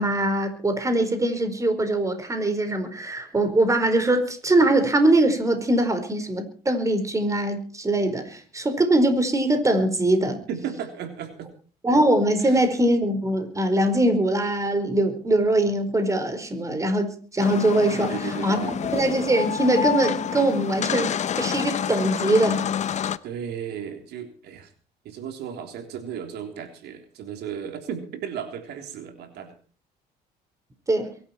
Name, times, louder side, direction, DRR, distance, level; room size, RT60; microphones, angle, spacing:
voice 1, 0.0-10.4 11.8-18.6 18.9-22.6 30.9-31.1, right 1 dB, 20° right, 8 dB, 4.7 m, -22 dB
voice 2, 10.5-11.5 12.4-12.6 18.0-18.7 23.2-24.7 25.0-29.5, right 8 dB, 75° right, 6 dB, 3.5 m, -35 dB
sound 1, 17.4-23.2, left 8 dB, 45° left, 0.9 m, -28 dB
23.0 x 12.0 x 4.5 m, 0.40 s
cardioid pair, 110°, 17 cm